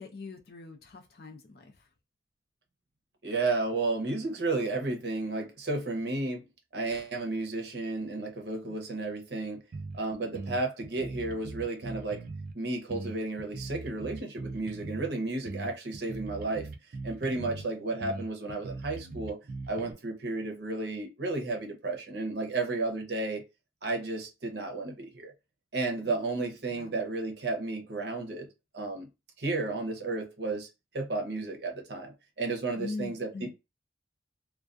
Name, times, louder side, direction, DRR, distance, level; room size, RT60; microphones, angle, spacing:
voice 1, 0.0-1.9 8.6-8.8 10.2-10.4 17.5-17.9 26.0-26.2 26.7-27.0 32.7-33.5, left 3 dB, 55° left, 0.4 m, -43 dB
voice 2, 3.2-6.5 6.7-9.6 9.9-12.2 12.5-16.7 17.0-19.4 19.7-23.4 23.8-25.3 25.7-28.5 28.7-29.1 29.4-30.7 30.9-33.5, right 3 dB, 70° right, 0.7 m, -33 dB
sound 1, 9.7-10.0 10.3-12.5 12.9-15.1 15.4-17.7 18.0-19.9, right 3 dB, 50° right, 0.3 m, -40 dB
2.3 x 2.2 x 2.4 m
head